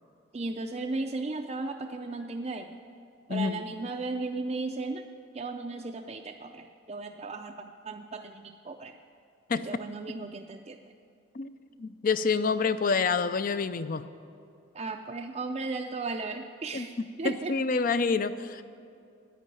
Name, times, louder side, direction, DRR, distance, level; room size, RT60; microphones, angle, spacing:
voice 1, 0.3-2.7 3.3-5.0 5.3-9.0 9.5-10.8 14.7-17.5, right 3 dB, 30° right, 3 dB, 0.4 m, -35 dB
voice 2, 11.8-14.0 16.7-16.9 17.2-18.6, left 4 dB, 45° left, 13 dB, 0.4 m, -27 dB
10.0 x 9.2 x 9.0 m, 2.5 s
head